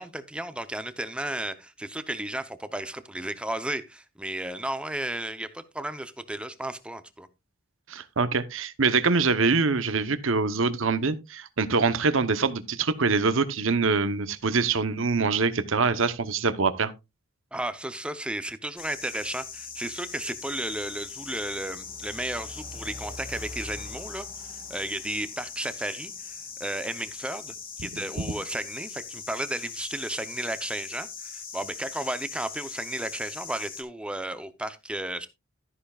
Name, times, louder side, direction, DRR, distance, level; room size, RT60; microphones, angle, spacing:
voice 1, 0.0-7.3 17.5-24.3 24.7-35.3, right 1 dB, 5° right, 0.7 m, -34 dB
voice 2, 7.9-16.9 27.8-27.9 28.2-28.3, right 4 dB, 65° right, 0.9 m, -24 dB
sound 1, 18.8-33.8, left 5 dB, 45° left, 2.8 m, -40 dB
13.0 x 10.0 x 2.4 m
head